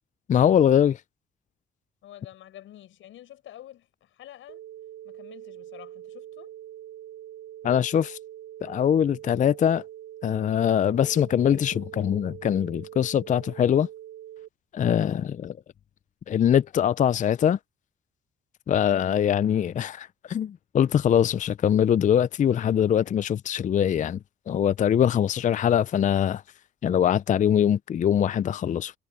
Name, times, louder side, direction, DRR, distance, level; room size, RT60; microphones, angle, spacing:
voice 1, 0.3-1.0 7.6-8.2 8.6-9.8 10.2-13.9 14.7-15.5 16.3-17.6 18.7-24.2 24.5-26.4 26.8-28.9, left 9 dB, 40° left, 0.4 m, -22 dB
voice 2, 2.0-4.6 5.0-6.5 18.8-19.1, left 12 dB, 80° left, 6.8 m, -48 dB
sound 1, 4.5-14.5, right 12 dB, 85° right, 3.5 m, -43 dB
cardioid pair, 90°, 20 cm